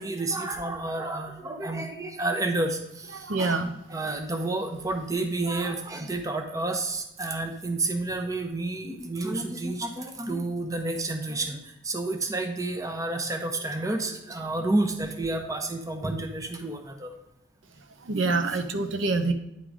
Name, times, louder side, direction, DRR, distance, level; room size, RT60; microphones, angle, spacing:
voice 1, 0.0-2.8 3.4-3.6 3.9-11.6 11.9-17.1, right 2 dB, 15° right, 4 dB, 0.7 m, -30 dB
voice 2, 3.1-3.7 18.1-19.3, right 3 dB, 85° right, 8 dB, 0.7 m, -26 dB
9.6 x 3.8 x 4.8 m, 0.85 s
head